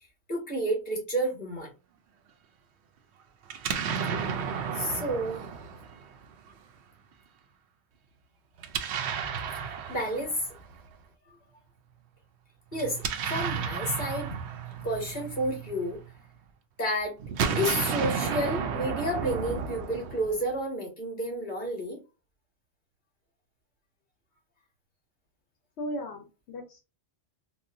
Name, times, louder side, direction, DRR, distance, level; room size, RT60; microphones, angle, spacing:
voice 1, 0.3-1.7 4.7-5.5 9.6-9.7 9.9-10.5 12.7-14.4 14.8-16.0 16.8-17.2 17.6-22.0, equal, 50° left, 1.8 m, -30 dB
Explosion, 3.5-6.5 8.6-10.8 12.7-16.2 17.2-20.6, right 7 dB, 85° right, 0.9 m, -33 dB
voice 2, 25.8-26.8, equal, 80° left, 0.9 m, -36 dB
4.0 x 2.2 x 2.5 m
omnidirectional pair, 1.1 m